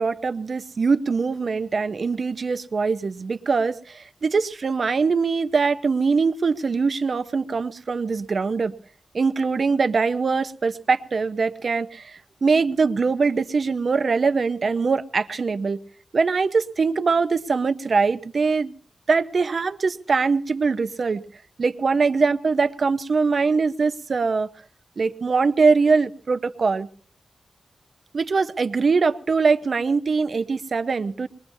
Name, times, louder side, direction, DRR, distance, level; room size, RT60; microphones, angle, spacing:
voice 1, 0.0-8.7 9.1-15.8 16.1-18.7 19.1-21.2 21.6-24.5 25.0-26.9 28.1-31.3, right 4 dB, 50° right, 12 dB, 0.7 m, -22 dB
22.0 x 21.0 x 2.7 m, 0.44 s
wide cardioid pair, 145°, 0 cm